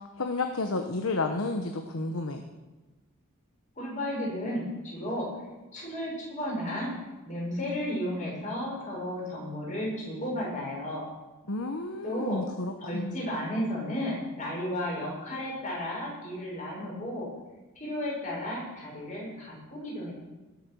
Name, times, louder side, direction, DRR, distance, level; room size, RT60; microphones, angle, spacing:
voice 1, 0.2-2.4 11.5-13.2, left 3 dB, 70° left, 5 dB, 1.2 m, -31 dB
voice 2, 3.8-5.3 5.7-6.9 7.3-11.1 12.0-12.4 12.8-17.3 17.7-20.1, left 1 dB, 35° left, -4 dB, 6.7 m, -33 dB
19.5 x 8.3 x 6.4 m, 1.1 s
head